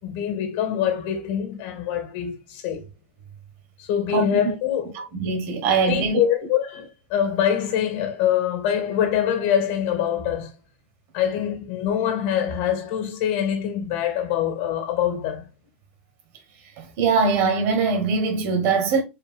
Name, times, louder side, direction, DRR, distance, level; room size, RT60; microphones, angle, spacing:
voice 1, 0.0-2.8 3.8-4.9 5.9-10.5 11.1-15.5, left 9 dB, 60° left, 2.0 m, -24 dB
voice 2, 4.9-6.2 16.8-19.0, right 4 dB, 50° right, 1.4 m, -22 dB
4.7 x 3.1 x 3.5 m
supercardioid pair, 140°, 6 cm